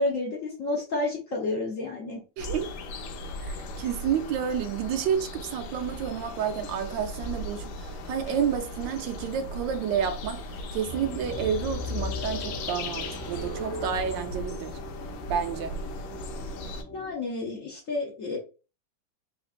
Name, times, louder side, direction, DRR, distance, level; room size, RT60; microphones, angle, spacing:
voice 1, 0.0-2.2 16.9-18.4, left 2 dB, 55° left, 1.0 m, -30 dB
sound 1, 2.4-16.8, left 2 dB, 85° left, 1.4 m, -38 dB
voice 2, 2.4-2.7 3.4-10.4 10.7-14.8 15.3-15.8, right 8 dB, 75° right, 1.2 m, -30 dB
sound 2, 10.9-17.1, left 1 dB, 25° right, 1.1 m, -37 dB
4.0 x 3.2 x 2.4 m
omnidirectional pair, 2.1 m